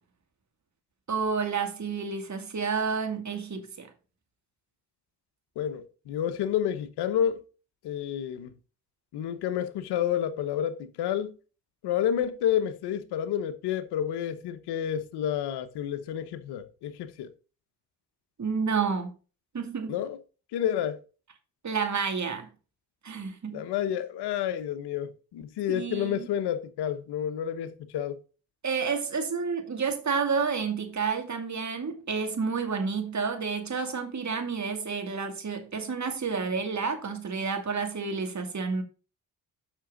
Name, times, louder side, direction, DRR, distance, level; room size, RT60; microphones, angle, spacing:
voice 1, 1.1-3.9 18.4-19.1 19.5-19.9 21.6-22.5 23.0-23.6 25.7-26.3 28.6-38.8, right 5 dB, 45° right, 2.5 m, -30 dB
voice 2, 5.6-7.4 7.8-8.5 9.1-11.3 11.8-17.3 19.9-20.2 20.5-21.0 23.5-28.2, left 10 dB, 85° left, 1.0 m, -30 dB
7.5 x 6.2 x 3.9 m
supercardioid pair, 50°, 39 cm